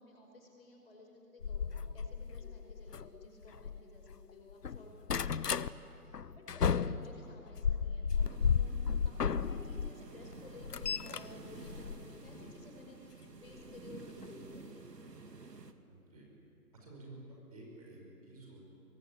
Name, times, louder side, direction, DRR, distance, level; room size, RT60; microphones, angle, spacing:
voice 1, 0.0-8.8 9.0-14.9, left 2 dB, 40° left, 1 dB, 5.4 m, -55 dB
sound 1, 1.4-4.2 4.5-5.7 6.1-9.9 10.3-12.5 13.6-13.8 14.2-14.3 14.5-14.6, left 6 dB, 75° left, 1.0 m, -34 dB
voice 2, 4.8-5.3 15.9-16.2 16.7-18.6, right 2 dB, 25° right, -2 dB, 5.4 m, -52 dB
sound 2, 8.2-15.7, right 3 dB, 90° right, 2.3 m, -51 dB
23.5 x 22.5 x 9.4 m, 2.8 s
hypercardioid pair, 175°, 47 cm